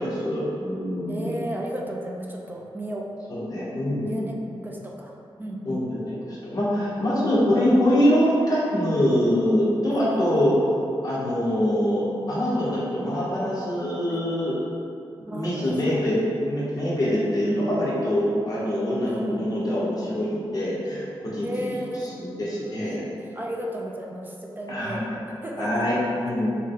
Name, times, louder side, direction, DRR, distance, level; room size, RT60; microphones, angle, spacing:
voice 1, 0.0-1.4 3.3-4.3 5.6-10.5 11.0-14.5 15.3-21.5 22.2-23.0 24.7-25.0 25.6-26.0 26.2-26.5, equal, 40° left, -8 dB, 1.2 m, -24 dB
voice 2, 1.1-3.0 4.1-4.4 4.6-5.1 5.4-5.8 9.9-10.5 14.1-14.2 15.3-16.0 19.0-19.6 21.4-22.1 23.3-25.0 25.4-25.8, right 1 dB, 20° right, -1 dB, 0.5 m, -34 dB
6.2 x 2.2 x 3.8 m, 2.6 s
wide cardioid pair, 150°, 9 cm